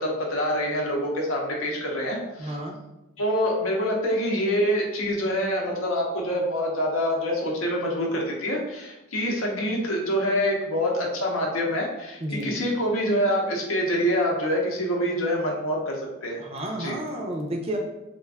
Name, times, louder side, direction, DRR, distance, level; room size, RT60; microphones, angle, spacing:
voice 1, 0.0-2.6 3.2-16.4 16.8-17.0, equal, 80° left, -1 dB, 0.7 m, -26 dB
voice 2, 2.4-2.8 12.2-12.5 16.4-17.8, right 1 dB, 30° right, 1 dB, 0.4 m, -31 dB
2.4 x 2.2 x 3.4 m, 0.96 s
head